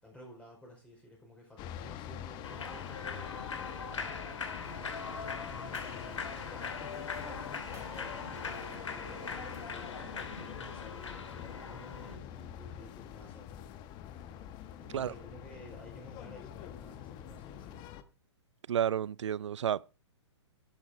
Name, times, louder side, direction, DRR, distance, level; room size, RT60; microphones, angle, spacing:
voice 1, 0.0-4.3 5.4-13.5 14.8-17.9, left 1 dB, 5° left, 4.8 m, -53 dB
sound 1, 1.6-18.0, left 11 dB, 30° left, 1.2 m, -45 dB
Human voice / Clapping / Cheering, 2.4-12.1, left 5 dB, 80° left, 2.8 m, -41 dB
sound 2, 4.6-9.7, right 6 dB, 20° right, 2.5 m, -55 dB
voice 2, 18.7-19.9, right 9 dB, 75° right, 0.5 m, -31 dB
11.5 x 10.0 x 5.0 m
hypercardioid pair, 130°, 15 cm